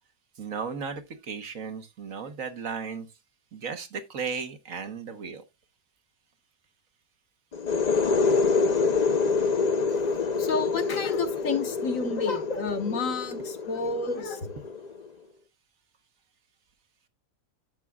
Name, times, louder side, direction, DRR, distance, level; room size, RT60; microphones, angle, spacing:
voice 1, 0.4-3.1 3.5-5.4, right 5 dB, 60° right, 1.5 m, -35 dB
sound 1, 7.5-15.1, left 4 dB, 40° left, 0.6 m, -26 dB
voice 2, 10.4-14.5, left 4 dB, 55° left, 1.7 m, -30 dB
12.0 x 8.2 x 2.3 m
omnidirectional pair, 1.7 m